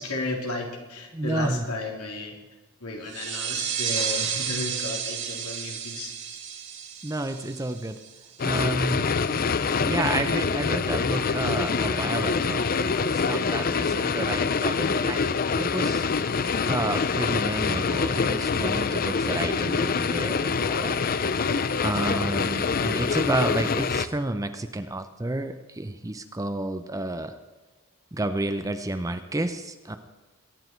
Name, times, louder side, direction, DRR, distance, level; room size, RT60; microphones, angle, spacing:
voice 1, 0.0-2.4 2.8-6.1, left 2 dB, 85° left, 0 dB, 3.4 m, -33 dB
voice 2, 1.1-1.7 7.0-8.0 8.4-9.1 9.8-16.0 16.6-21.0 21.8-27.4 28.1-30.0, right 2 dB, 15° right, 8 dB, 0.6 m, -30 dB
sound 1, 3.1-8.4, right 8 dB, 50° right, 2.0 m, -32 dB
sound 2, 8.4-24.1, left 5 dB, 40° left, 0.5 m, -25 dB
22.5 x 10.0 x 4.5 m, 1.2 s
head